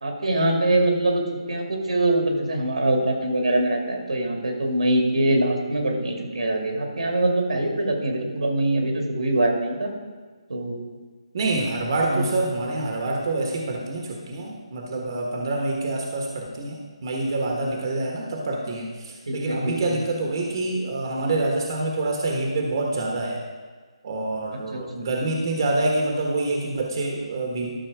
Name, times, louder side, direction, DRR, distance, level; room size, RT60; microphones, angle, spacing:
voice 1, 0.0-1.2 1.5-9.9 10.5-10.8 12.1-12.3 19.3-20.0 24.7-25.1, right 1 dB, 80° right, 2 dB, 2.1 m, -23 dB
voice 2, 11.3-23.4 24.0-27.7, right 2 dB, 45° right, 0 dB, 1.3 m, -26 dB
12.5 x 6.2 x 4.8 m, 1.5 s
hypercardioid pair, 155°, 3 cm